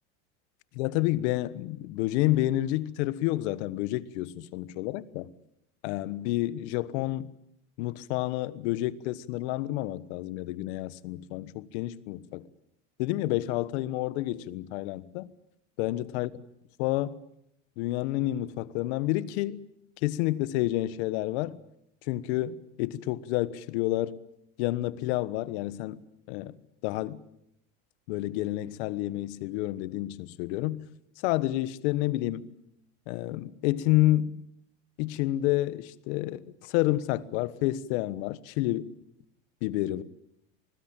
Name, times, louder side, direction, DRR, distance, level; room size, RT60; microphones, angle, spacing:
voice 1, 0.7-5.3 5.8-7.3 7.8-12.5 13.0-15.3 15.8-16.3 16.8-17.2 17.8-19.6 20.0-21.6 22.1-24.2 24.6-26.0 26.3-26.5 26.8-27.2 28.1-30.9 31.2-32.5 33.1-34.4 35.0-38.9 39.6-40.0, left 16 dB, 70° left, 1.3 m, -29 dB
25.0 x 20.0 x 9.0 m
supercardioid pair, 130°, 35 cm